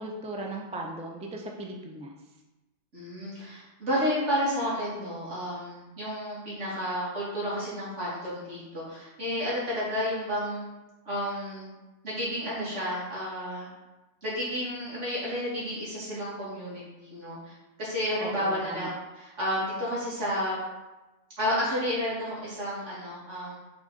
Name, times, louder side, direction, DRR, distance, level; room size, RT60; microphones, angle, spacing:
voice 1, 0.0-2.2 18.2-18.9, right 2 dB, 10° right, 0 dB, 0.4 m, -37 dB
voice 2, 2.9-10.6 11.1-11.7 12.0-13.7 14.2-17.5 17.8-20.6 21.4-23.6, equal, 70° right, -8 dB, 2.7 m, -31 dB
6.2 x 4.1 x 3.8 m, 1.1 s
omnidirectional pair, 1.3 m